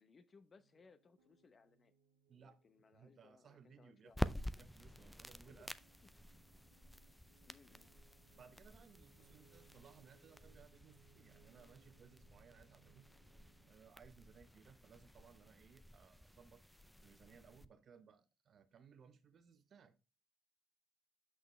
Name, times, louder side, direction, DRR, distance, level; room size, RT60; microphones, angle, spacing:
voice 1, 0.0-1.9 2.3-4.2 5.5-5.7 7.5-7.9, left 4 dB, 40° left, 0.8 m, -66 dB
sound 1, 0.6-13.7, right 7 dB, 85° right, 1.1 m, -72 dB
voice 2, 2.3-2.6 2.9-5.7 8.4-13.1 13.6-16.6 17.0-20.0, right 6 dB, 50° right, 1.0 m, -63 dB
sound 2, 4.1-17.7, left 1 dB, 5° left, 0.4 m, -49 dB
6.2 x 6.0 x 3.3 m
hypercardioid pair, 60°, 0 cm